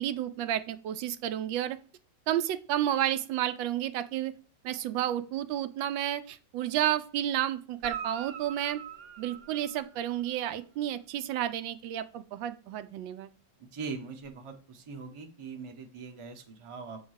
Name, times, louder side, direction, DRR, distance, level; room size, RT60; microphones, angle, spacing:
voice 1, 0.0-1.8 2.3-4.3 4.6-8.8 9.2-13.3, right 11 dB, 80° right, 11 dB, 1.3 m, -31 dB
Guitar, 7.8-10.4 14.2-14.3, right 8 dB, 65° right, 0.9 m, -42 dB
voice 2, 13.6-17.0, right 5 dB, 25° right, 3 dB, 0.6 m, -41 dB
7.7 x 3.6 x 6.3 m, 0.38 s
omnidirectional pair, 2.1 m